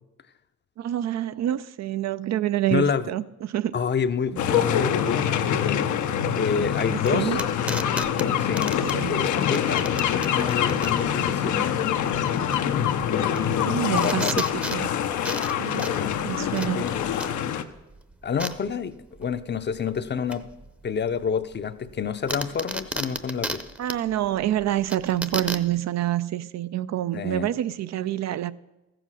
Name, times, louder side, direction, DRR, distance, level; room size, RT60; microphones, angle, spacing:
voice 1, 0.8-3.7 4.3-4.6 6.9-7.4 8.9-9.2 11.2-11.7 13.6-14.4 14.7-14.9 15.6-15.9 16.3-16.9 23.8-28.5, right 12 dB, 65° right, 0.5 m, -27 dB
voice 2, 2.7-3.0 3.7-5.9 6.4-7.4 8.4-11.8 13.0-14.4 15.9-16.3 16.8-17.1 18.2-18.9 19.2-20.4 20.8-23.6 27.1-27.5, left 6 dB, 35° left, 0.7 m, -28 dB
sound 1, 4.4-17.6, left 9 dB, 75° left, 0.8 m, -25 dB
sound 2, 6.4-25.8, right 1 dB, 5° right, 0.7 m, -36 dB
14.0 x 7.9 x 6.2 m
cardioid pair, 90°, 30 cm